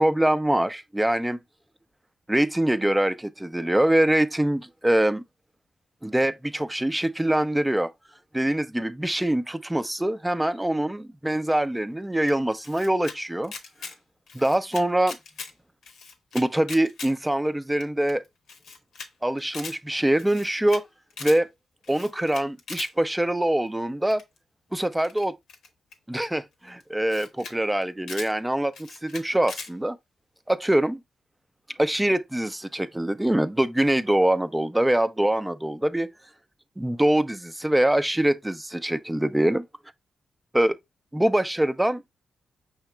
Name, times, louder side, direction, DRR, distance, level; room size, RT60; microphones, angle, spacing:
voice 1, 0.0-1.4 2.3-5.2 6.0-7.9 8.3-13.5 14.3-15.2 16.3-18.2 19.2-20.9 21.2-21.5 21.9-24.2 24.7-25.3 26.1-30.0 30.5-31.0 31.8-36.1 36.8-39.6 40.5-40.8 41.1-42.0, right 1 dB, 10° right, 0.6 m, -24 dB
Camera, 12.3-13.2 13.4-13.9 14.3-15.5 15.8-17.1 17.5-17.6 17.8-17.9 18.1-18.2 18.5-19.1 19.4-19.8 20.2-20.8 21.1-21.4 21.8-22.9 24.1-24.4 25.0-26.2 26.8-26.9 27.1-27.5 27.8-28.3 28.7-29.7, left 5 dB, 80° left, 0.9 m, -40 dB
5.6 x 2.9 x 3.3 m
supercardioid pair, 45°, 0 cm